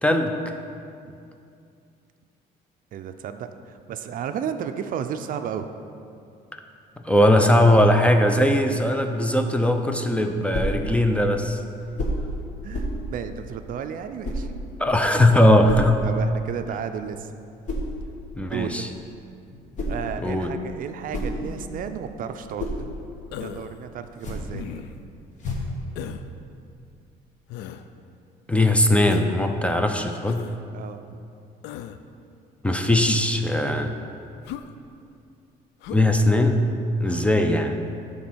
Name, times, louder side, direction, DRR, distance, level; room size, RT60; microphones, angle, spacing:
voice 1, 0.0-0.4 7.0-11.6 14.8-16.0 18.4-18.9 20.2-20.6 28.5-30.5 32.6-33.9 35.9-36.7 37.0-37.8, left 1 dB, 5° left, 5 dB, 0.5 m, -19 dB
voice 2, 2.9-5.7 12.6-14.5 16.0-17.3 18.4-19.0 19.9-22.9 23.4-24.8 30.7-31.0, right 8 dB, 55° right, 8 dB, 0.4 m, -33 dB
sound 1, 10.5-10.8 11.9-12.3 12.7-13.0 14.2-14.5 15.7-15.9 17.6-17.9 19.5-20.1 20.8-21.8 22.3-22.8 24.1-24.6 25.4-25.8, equal, 45° left, 1.5 m, -29 dB
Human voice, 23.3-23.8 24.5-25.0 26.0-26.3 27.5-27.8 29.1-29.4 30.2-30.6 31.6-32.0 33.1-33.4 34.4-34.7 35.8-36.1 37.0-37.4, left 10 dB, 85° left, 0.4 m, -36 dB
9.3 x 3.7 x 6.2 m, 2.5 s
cardioid pair, 110°, 17 cm